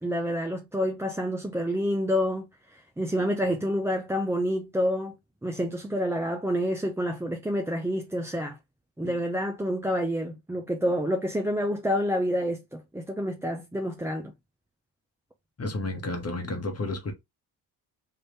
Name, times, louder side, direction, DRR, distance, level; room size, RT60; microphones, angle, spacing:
voice 1, 0.0-5.2 5.4-8.6 9.0-14.3, equal, 5° right, 0.5 m, -28 dB
voice 2, 15.6-17.1, left 2 dB, 30° left, 1.2 m, -31 dB
3.3 x 2.6 x 3.3 m
hypercardioid pair, 50°, 49 cm